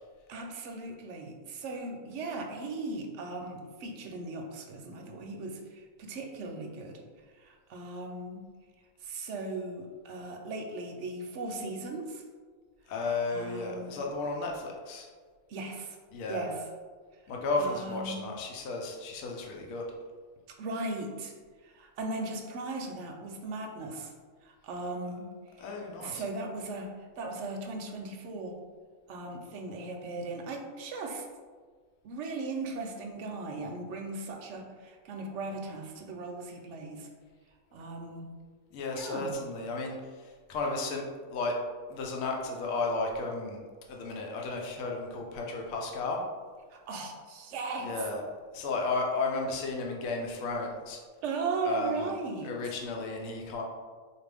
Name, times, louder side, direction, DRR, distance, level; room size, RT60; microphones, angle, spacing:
voice 1, 0.3-7.0 7.4-8.4 9.0-12.2 13.3-14.0 15.5-16.0 16.2-16.6 17.6-18.2 20.6-21.3 21.6-24.1 24.4-25.3 25.6-25.7 26.0-28.6 29.1-31.2 32.0-37.1 37.7-38.3 38.9-39.3 46.7-47.9 51.2-52.5, right 3 dB, 65° right, 3 dB, 0.8 m, -37 dB
voice 2, 12.9-15.1 16.1-16.5 17.3-19.8 25.6-26.2 38.7-40.0 40.5-41.0 41.3-41.6 41.9-43.6 43.9-46.2 47.8-48.2 48.5-51.0 51.6-52.1 52.4-53.6, left 3 dB, 75° left, 0 dB, 1.0 m, -33 dB
4.3 x 2.5 x 3.3 m, 1.6 s
omnidirectional pair, 1.5 m